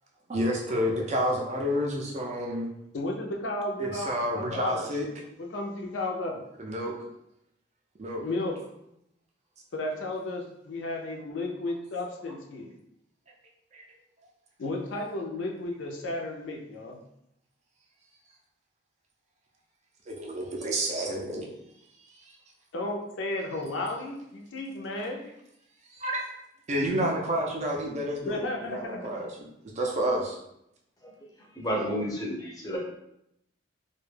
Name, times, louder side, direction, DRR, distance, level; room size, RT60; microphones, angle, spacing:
voice 1, 0.3-2.7 3.8-5.1 6.6-6.9 8.0-8.2 13.7-13.8 20.1-21.5 25.9-26.3 26.7-29.3 29.8-30.4, equal, 35° right, -1 dB, 0.4 m, -29 dB
voice 2, 2.9-4.9 5.4-6.4 8.2-8.6 9.7-12.7 14.6-17.0 22.7-25.2 28.2-29.3, left 2 dB, 70° left, 0 dB, 0.4 m, -33 dB
voice 3, 31.5-32.8, equal, 20° left, -2 dB, 0.5 m, -31 dB
2.2 x 2.0 x 3.2 m, 0.79 s
head